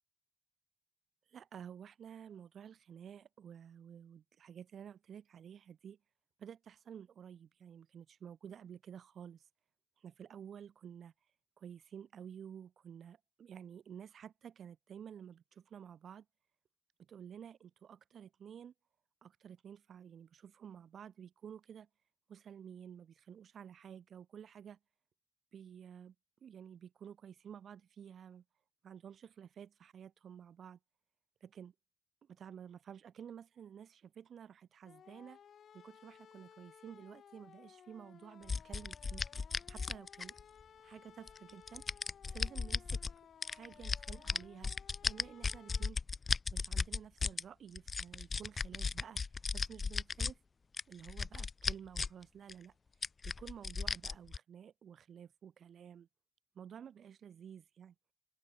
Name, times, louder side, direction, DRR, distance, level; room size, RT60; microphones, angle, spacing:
voice 1, 1.3-6.0 6.4-9.5 10.0-11.1 11.6-16.3 17.0-18.7 19.2-21.9 22.3-24.8 25.5-26.1 26.4-28.4 28.8-30.8 31.4-31.7 32.2-35.4 35.7-39.3 39.7-40.3 40.8-41.8 42.2-43.0 43.5-44.7 45.0-46.0 46.5-49.2 49.5-50.4 50.9-52.7 53.2-56.1 56.6-57.9, right 8 dB, 85° right, 7.2 m, -52 dB
sound 1, 34.8-45.9, left 8 dB, 85° left, 3.6 m, -59 dB
sound 2, 38.5-40.6 41.3-43.1 43.4-47.4 47.8-50.3 50.7-52.2 52.5-52.6 53.0-54.4, left 4 dB, 35° left, 1.4 m, -36 dB
open air
wide cardioid pair, 165°, 0 cm